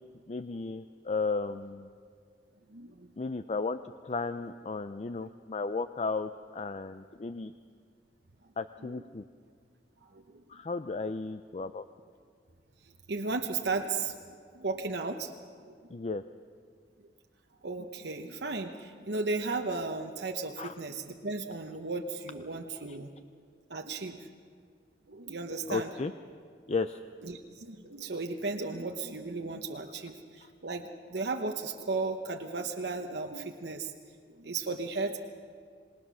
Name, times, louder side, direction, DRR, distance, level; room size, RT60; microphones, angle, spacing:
voice 1, 0.3-1.9 3.2-7.5 8.6-9.2 10.5-11.8 15.9-16.2 20.6-20.7 25.7-26.1 26.7-27.0, left 4 dB, 35° left, 10 dB, 0.5 m, -34 dB
voice 2, 2.7-3.1 8.9-9.0 10.0-10.4 13.1-15.3 15.7-15.8 17.0-17.1 17.6-23.1 23.7-24.2 25.1-25.9 27.2-33.9 34.3-35.2, right 3 dB, 65° right, 3 dB, 1.0 m, -35 dB
26.5 x 20.0 x 6.3 m, 2.1 s
head